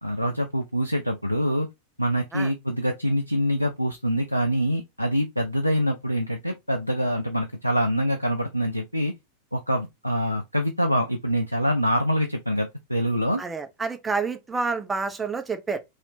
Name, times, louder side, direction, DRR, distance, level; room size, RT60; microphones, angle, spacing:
voice 1, 0.0-1.7 2.0-9.1 9.5-13.4, equal, 90° left, 0.4 m, -25 dB
voice 2, 13.4-15.8, right 4 dB, 15° right, 0.6 m, -28 dB
3.1 x 2.8 x 2.7 m
figure-of-eight pair, 90°, 0 cm